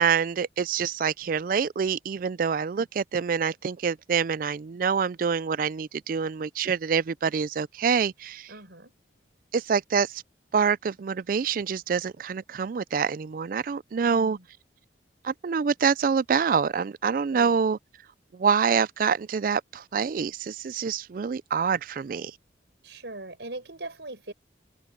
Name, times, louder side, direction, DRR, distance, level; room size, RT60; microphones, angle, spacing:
voice 1, 0.0-8.5 9.5-10.2 10.5-14.4 15.2-17.8 18.3-22.3, right 6 dB, 50° right, 0.3 m, -26 dB
voice 2, 8.5-8.9 14.0-14.4 17.3-17.6 22.8-24.3, right 2 dB, 80° right, 4.6 m, -40 dB
head